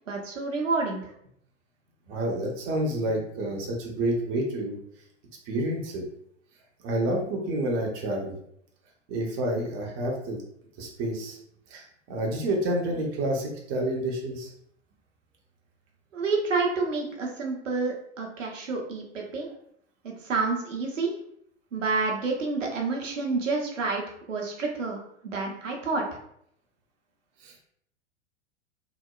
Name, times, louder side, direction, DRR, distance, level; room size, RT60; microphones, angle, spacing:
voice 1, 0.1-1.0 16.1-19.5 20.0-21.1 21.7-26.0, right 3 dB, 80° right, 0 dB, 0.6 m, -29 dB
voice 2, 2.1-4.8 5.5-6.0 6.8-8.4 9.1-10.4 10.8-11.4 11.7-11.8 12.1-14.5 27.4-27.6, right 1 dB, 30° right, -1 dB, 0.5 m, -29 dB
2.8 x 2.0 x 2.2 m, 0.71 s
figure-of-eight pair, 95°, 37 cm